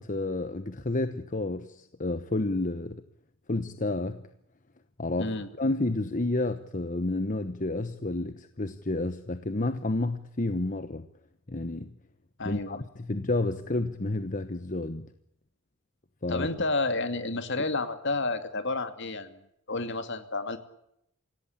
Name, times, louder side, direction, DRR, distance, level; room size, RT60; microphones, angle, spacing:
voice 1, 0.0-3.0 3.5-4.2 5.0-11.1 11.5-11.9 12.4-15.1 16.2-16.5, left 2 dB, 35° left, 1.0 m, -30 dB
voice 2, 5.2-5.5 12.4-12.8 16.3-19.4 19.7-20.6, left 3 dB, 55° left, 2.5 m, -30 dB
26.5 x 17.5 x 8.7 m
head